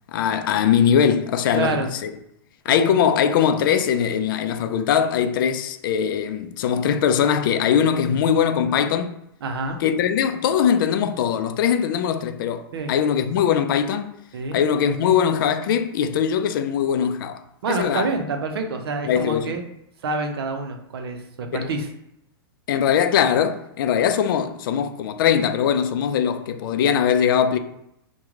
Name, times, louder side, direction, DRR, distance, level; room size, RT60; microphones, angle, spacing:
voice 1, 0.1-2.1 2.7-9.2 9.8-14.1 14.5-18.1 19.0-19.6 21.5-21.7 22.7-27.6, left 8 dB, 60° left, 0.4 m, -21 dB
voice 2, 1.5-1.9 2.7-3.0 9.4-9.8 12.7-12.9 14.3-14.6 17.6-19.6 20.0-21.9, right 3 dB, 85° right, 0.6 m, -27 dB
3.0 x 2.2 x 3.6 m
hypercardioid pair, 145°, 13 cm